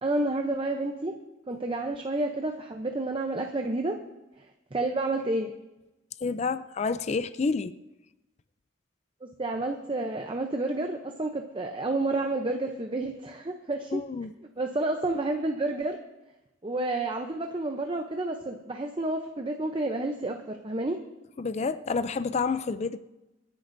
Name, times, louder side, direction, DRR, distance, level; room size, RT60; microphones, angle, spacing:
voice 1, 0.0-1.1 1.5-4.0 4.7-5.5 9.2-14.0 14.6-16.0 16.6-21.0, right 2 dB, 25° right, 0.6 m, -30 dB
voice 2, 6.2-7.7 13.9-14.3 21.4-23.0, left 4 dB, 35° left, 0.4 m, -29 dB
26.5 x 10.5 x 2.6 m
head